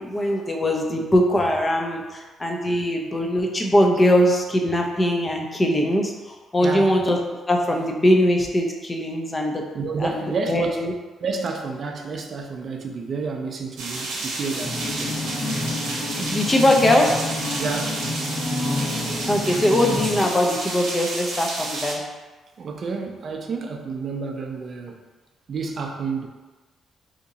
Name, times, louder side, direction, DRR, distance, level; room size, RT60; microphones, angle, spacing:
voice 1, 0.0-7.2 7.5-9.6 10.0-10.2 10.5-10.9 16.2-17.2 19.3-22.0, left 1 dB, 20° left, 1 dB, 0.5 m, -21 dB
voice 2, 6.6-7.0 9.7-10.9 11.2-15.2 17.6-18.4 22.6-25.1 25.5-26.3, right 4 dB, 50° right, 3 dB, 0.5 m, -30 dB
sound 1, 13.8-21.9, right 2 dB, 85° right, 0.8 m, -31 dB
sound 2, 14.6-20.2, left 2 dB, 50° left, 1.1 m, -29 dB
2.8 x 2.6 x 3.8 m, 1.3 s
cardioid pair, 90°, 0 cm